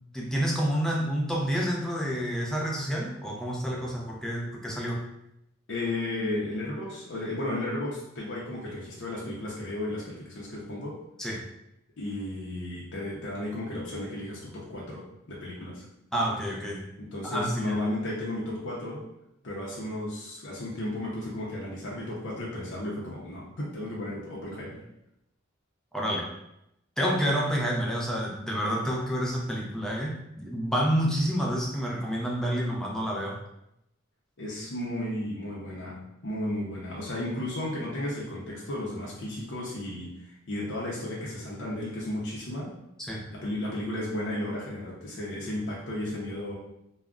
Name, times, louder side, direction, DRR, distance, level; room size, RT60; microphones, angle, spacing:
voice 1, 0.1-5.0 11.2-11.4 16.1-16.8 17.2-17.8 25.9-26.3 27.0-33.4 43.0-43.2, equal, 5° left, -3 dB, 0.4 m, -29 dB
voice 2, 5.7-11.0 12.0-15.8 17.0-19.0 19.4-24.8 34.4-42.7 43.3-46.5, left 1 dB, 60° left, -5 dB, 0.6 m, -34 dB
2.3 x 2.1 x 3.5 m, 0.83 s
head